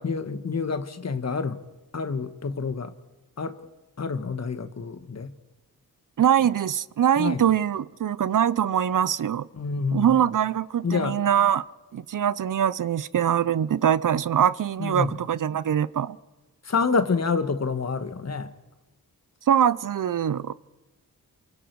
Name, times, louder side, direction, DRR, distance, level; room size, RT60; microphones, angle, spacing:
voice 1, 0.0-1.6 1.9-2.9 3.4-3.6 4.0-5.3 7.2-7.5 9.5-10.3 10.8-11.2 14.8-15.2 16.6-18.5, left 5 dB, 45° left, 1.5 m, -28 dB
voice 2, 6.2-9.5 9.9-11.7 11.9-16.2 19.5-20.5, right 9 dB, 60° right, 0.6 m, -23 dB
28.0 x 23.5 x 4.7 m
wide cardioid pair, 90°, 36 cm